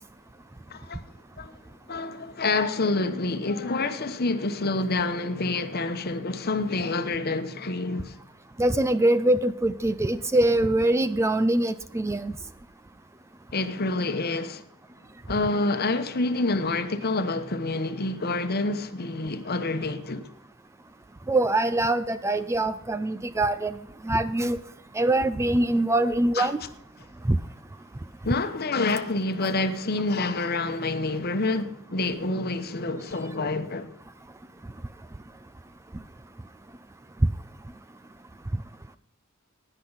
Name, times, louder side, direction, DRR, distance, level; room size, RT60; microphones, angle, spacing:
voice 1, 0.7-1.0 1.4-1.6 1.9-8.2 13.5-14.6 15.3-20.3 26.3-26.5 28.2-34.0, left 2 dB, 45° left, 1.0 m, -27 dB
voice 2, 8.6-12.3 21.3-23.7 24.0-24.6 25.0-26.6 27.3-27.4, right 1 dB, 15° right, 0.4 m, -23 dB
16.5 x 10.0 x 4.0 m
head